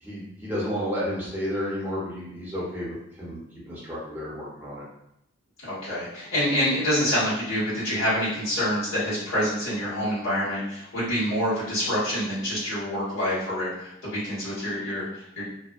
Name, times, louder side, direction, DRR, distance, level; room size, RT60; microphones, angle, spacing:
voice 1, 0.0-3.4 3.7-4.9, equal, 10° right, -7 dB, 0.7 m, -31 dB
voice 2, 5.6-15.5, equal, 75° left, -12 dB, 1.4 m, -27 dB
2.6 x 2.2 x 2.4 m, 0.80 s
head